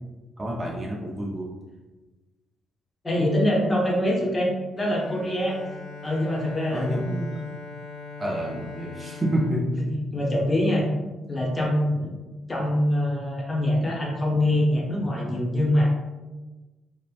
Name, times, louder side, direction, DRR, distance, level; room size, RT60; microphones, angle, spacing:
voice 1, 0.4-1.5 6.7-7.0 8.2-10.0, equal, 25° right, -3 dB, 0.5 m, -28 dB
voice 2, 3.0-5.6 6.0-7.3 9.8-9.9 10.1-10.9 11.3-12.1 12.5-15.9, left 1 dB, 20° left, -3 dB, 0.7 m, -24 dB
Bowed string instrument, 4.8-10.8, left 4 dB, 75° left, 0.5 m, -41 dB
2.9 x 2.0 x 2.4 m, 1.2 s
cardioid pair, 90°, 0 cm